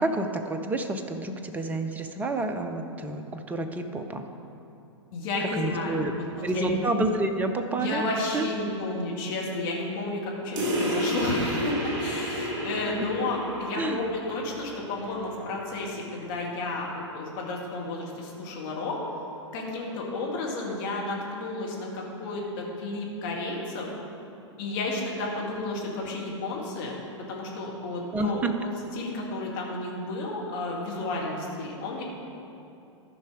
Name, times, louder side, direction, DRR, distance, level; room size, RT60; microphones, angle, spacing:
voice 1, 0.0-4.3 5.5-6.1 6.4-8.0 8.3-8.5 13.7-14.0 28.1-28.5, right 2 dB, 10° right, 6 dB, 0.6 m, -29 dB
voice 2, 5.1-6.2 6.5-6.8 7.8-19.0 19.5-23.9 24.6-27.0 27.3-28.4 29.0-32.0, left 2 dB, 40° left, -3 dB, 2.1 m, -32 dB
sound 1, 10.6-15.6, equal, 25° right, 2.5 m, -31 dB
13.5 x 5.5 x 4.8 m, 2.7 s
figure-of-eight pair, 105°, 16 cm